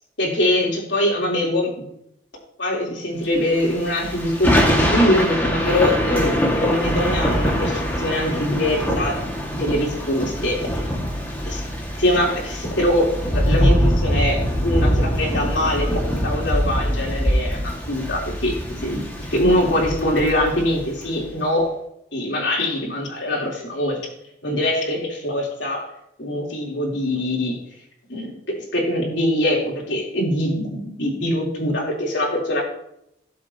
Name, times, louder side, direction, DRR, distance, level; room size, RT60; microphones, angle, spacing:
voice 1, 0.2-1.9 2.6-9.2 9.5-10.9 11.5-11.6 12.0-18.5 18.8-19.0 19.3-21.7 22.1-24.0 24.4-25.9 26.2-27.6 28.1-28.3 28.6-32.6, left 1 dB, 85° left, -2 dB, 3.4 m, -23 dB
Thunder / Rain, 3.6-21.1, equal, 10° left, 1.7 m, -23 dB
18.0 x 7.6 x 2.8 m, 0.77 s
head